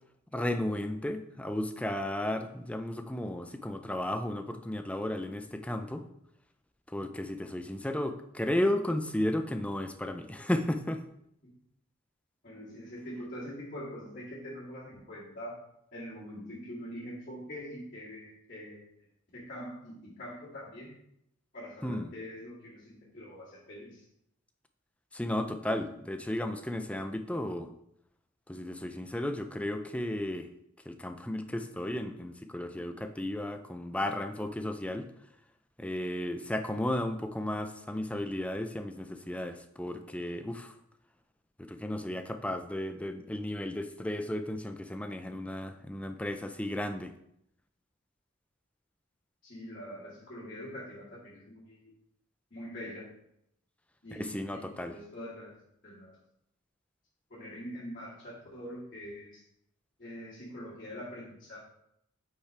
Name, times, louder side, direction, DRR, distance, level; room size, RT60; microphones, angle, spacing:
voice 1, 0.3-6.1 6.9-11.0 21.8-22.1 25.1-27.7 28.5-30.5 30.8-35.1 35.8-40.7 41.6-47.1 54.1-54.9, left 1 dB, 5° left, 7 dB, 0.4 m, -34 dB
voice 2, 12.4-15.6 15.9-18.9 19.3-20.9 21.5-24.0 49.4-51.9 52.5-53.1 54.0-56.2 57.3-59.4 60.0-61.6, equal, 40° left, -12 dB, 2.6 m, -44 dB
8.4 x 5.6 x 3.3 m, 0.75 s
head